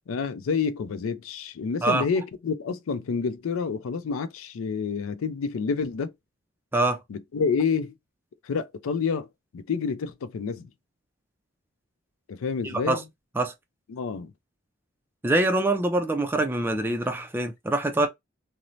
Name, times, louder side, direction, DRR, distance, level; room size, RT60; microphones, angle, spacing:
voice 1, 0.1-6.1 7.1-7.9 8.4-9.3 9.5-10.7 12.3-13.0 13.9-14.3, left 5 dB, 85° left, 0.4 m, -28 dB
voice 2, 12.6-13.0 13.4-13.5 15.2-18.1, right 2 dB, 10° right, 0.3 m, -24 dB
2.6 x 2.0 x 3.0 m
head